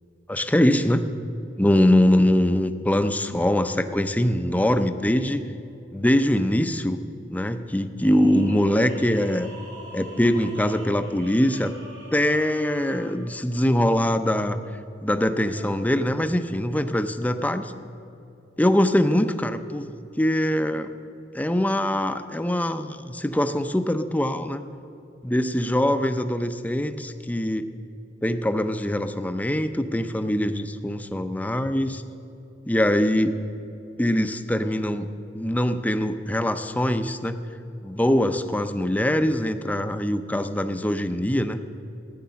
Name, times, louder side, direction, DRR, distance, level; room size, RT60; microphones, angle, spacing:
voice 1, 0.3-1.0 1.6-5.4 5.9-7.0 7.3-9.5 9.9-11.7 12.1-14.6 15.0-17.7 18.6-20.9 21.3-24.6 25.2-27.7 28.2-32.0 32.7-33.4 34.0-35.1 35.3-37.4 37.8-41.6, left 1 dB, 10° left, 9 dB, 0.5 m, -23 dB
sound 1, 8.0-13.3 15.3-15.8, equal, 70° right, 4.0 m, -44 dB
14.0 x 9.7 x 6.9 m, 2.7 s
head